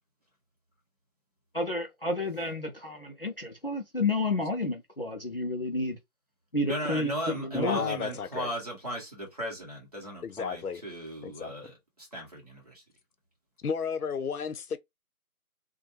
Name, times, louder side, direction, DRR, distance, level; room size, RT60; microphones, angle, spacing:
voice 1, 1.5-6.0 6.5-7.8, left 2 dB, 40° left, 0.5 m, -30 dB
voice 2, 6.6-12.8, right 1 dB, 25° right, 0.9 m, -37 dB
voice 3, 7.5-8.5 10.2-10.8 11.2-11.7 13.6-14.8, left 6 dB, 85° left, 0.7 m, -33 dB
2.7 x 2.2 x 2.9 m
figure-of-eight pair, 170°, 44 cm